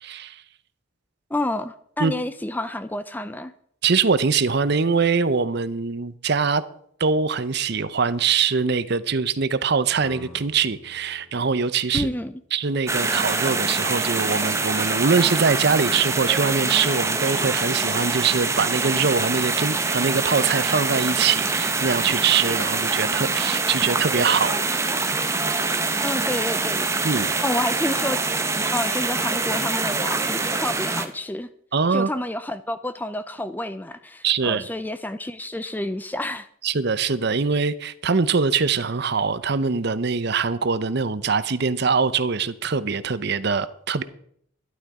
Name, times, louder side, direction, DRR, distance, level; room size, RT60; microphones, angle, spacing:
voice 1, 0.0-0.4 2.0-2.1 3.8-6.6 7.0-12.1 12.5-24.6 27.0-27.3 31.7-32.1 34.2-34.7 36.6-44.0, right 5 dB, 50° right, 0.6 m, -23 dB
voice 2, 1.3-3.5 11.9-12.3 26.0-27.1 27.4-28.2 28.7-31.5 31.9-36.5, left 1 dB, 10° left, 0.4 m, -29 dB
sound 1, 10.0-12.9, left 2 dB, 65° left, 6.6 m, -47 dB
sound 2, 12.9-31.1, right 3 dB, 15° right, 0.9 m, -24 dB
12.0 x 11.5 x 4.8 m
head